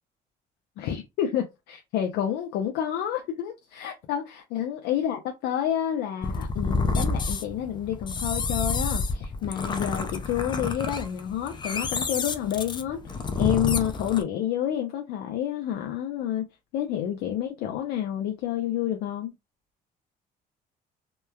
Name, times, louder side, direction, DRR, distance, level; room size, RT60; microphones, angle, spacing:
voice 1, 0.8-16.5 16.7-19.3, left 10 dB, 85° left, 0.5 m, -29 dB
sound 1, 6.2-14.2, left 4 dB, 25° left, 0.4 m, -29 dB
2.9 x 2.2 x 2.2 m
cardioid pair, 110°, 17 cm